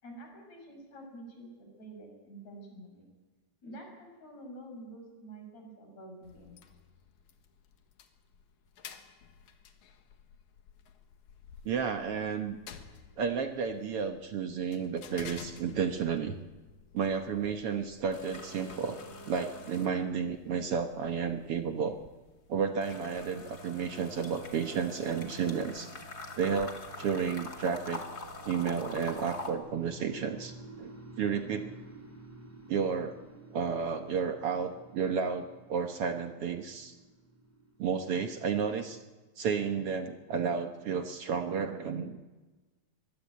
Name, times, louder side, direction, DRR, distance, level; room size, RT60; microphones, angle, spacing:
voice 1, 0.0-3.1 3.6-6.6, right 1 dB, 65° left, 3 dB, 7.3 m, -48 dB
sound 1, 6.2-18.6, left 7 dB, 90° left, 3.0 m, -53 dB
voice 2, 11.7-12.6 13.2-16.4 16.9-19.0 19.3-22.0 22.5-25.9 26.4-28.0 28.5-30.5 30.8-30.9 31.2-31.8 32.7-33.2 33.5-37.0 37.8-39.0 39.4-42.2, right 6 dB, 60° right, 6 dB, 1.9 m, -32 dB
sound 2, 17.1-17.5 17.8-20.4 20.8-29.5, left 2 dB, 35° left, 2.6 m, -44 dB
sound 3, 29.1-39.1, right 2 dB, 5° right, 3.6 m, -51 dB
24.0 x 21.0 x 8.4 m, 1.2 s
omnidirectional pair, 3.3 m